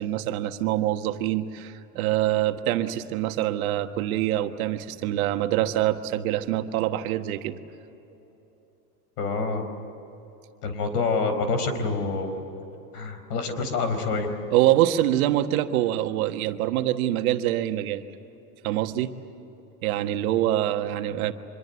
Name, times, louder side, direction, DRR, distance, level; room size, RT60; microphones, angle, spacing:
voice 1, 0.0-7.6 14.5-18.0 18.6-19.1 19.8-21.3, right 13 dB, 60° right, 7 dB, 1.5 m, -25 dB
voice 2, 9.2-9.7 10.6-12.4 12.9-14.3 20.0-20.1, left 4 dB, 75° left, 8 dB, 4.7 m, -27 dB
25.5 x 22.5 x 8.1 m, 3.0 s
supercardioid pair, 130°, 47 cm